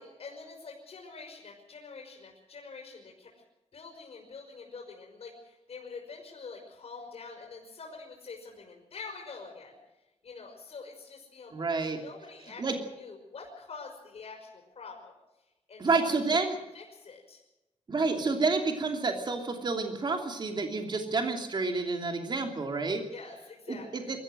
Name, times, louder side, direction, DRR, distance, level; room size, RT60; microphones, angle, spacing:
voice 1, 0.0-3.3 3.7-9.8 10.2-15.1 15.7-16.2 16.7-17.4 23.1-24.1, left 4 dB, 60° left, 0 dB, 5.4 m, -46 dB
voice 2, 11.5-12.0 12.6-12.7 15.8-16.6 17.9-23.0 23.7-24.0, right 3 dB, 40° right, 4 dB, 2.8 m, -29 dB
23.5 x 14.5 x 7.8 m, 0.98 s
wide cardioid pair, 180°, 12 cm